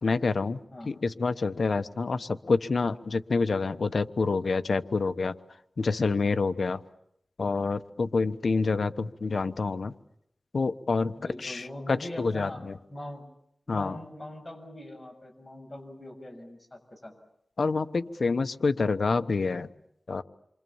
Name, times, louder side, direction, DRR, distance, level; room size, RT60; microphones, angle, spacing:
voice 1, 0.0-5.3 5.8-6.8 7.4-9.9 10.5-12.8 13.7-14.0 17.6-19.7 20.1-20.2, left 4 dB, 75° left, 10 dB, 1.0 m, -27 dB
voice 2, 11.2-12.6 12.9-13.3 13.7-17.1, left 1 dB, 20° left, 2 dB, 7.2 m, -42 dB
29.0 x 25.0 x 7.2 m, 0.72 s
wide cardioid pair, 95°, 0 cm